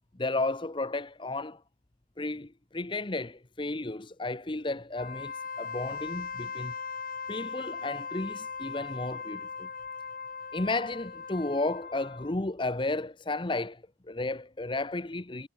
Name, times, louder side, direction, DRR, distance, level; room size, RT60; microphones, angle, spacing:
voice 1, 0.2-1.6 2.2-6.7 7.3-9.7 10.5-13.8 14.1-15.5, left 2 dB, 25° left, 0.9 m, -33 dB
Wind instrument woodwind instrument, 4.9-12.4, left 5 dB, 50° left, 1.7 m, -39 dB
head